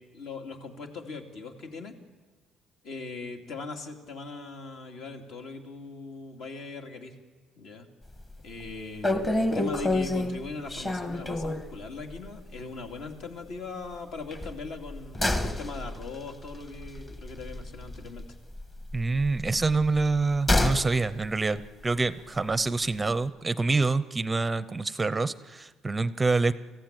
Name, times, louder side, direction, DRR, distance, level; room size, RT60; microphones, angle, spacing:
voice 1, 0.0-1.9 2.8-7.1 7.6-7.9 8.4-18.3, left 3 dB, 65° left, 3 dB, 2.8 m, -40 dB
sound 1, 8.1-8.4 8.7-8.8 9.0-11.7 12.1-12.3 12.6-12.7 14.3-18.2 18.5-20.9 21.2-21.3, left 2 dB, 20° left, 1.5 m, -29 dB
voice 2, 18.9-26.5, right 3 dB, 15° right, 15 dB, 0.6 m, -26 dB
25.0 x 15.0 x 9.0 m, 1.3 s
cardioid pair, 140°, 0 cm